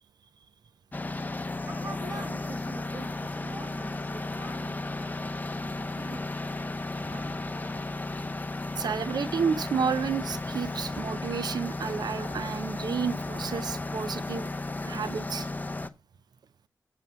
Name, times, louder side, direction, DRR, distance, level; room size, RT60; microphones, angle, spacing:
sound 1, 0.9-15.9, left 2 dB, 25° left, 0.8 m, -34 dB
voice 1, 1.6-5.3 5.6-6.4 6.9-7.6, right 3 dB, 45° right, 1.7 m, -45 dB
voice 2, 8.8-14.5 14.8-15.5, right 6 dB, 75° right, 0.6 m, -31 dB
7.8 x 6.7 x 5.7 m
cardioid pair, 60°, 7 cm